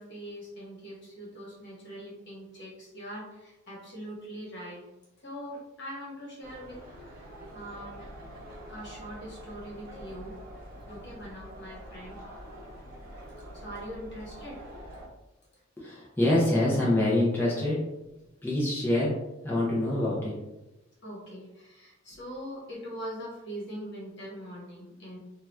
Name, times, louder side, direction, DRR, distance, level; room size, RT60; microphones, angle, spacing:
voice 1, 0.0-4.8 5.2-8.0 8.7-10.4 10.9-12.2 13.5-14.6 21.0-25.2, equal, 55° left, -5 dB, 1.1 m, -42 dB
sound 1, 6.4-15.1, equal, 45° right, 0.7 m, -46 dB
voice 2, 15.8-17.8 18.4-19.1 19.4-20.3, left 1 dB, 10° left, -7 dB, 0.6 m, -25 dB
2.7 x 2.3 x 3.3 m, 0.99 s
head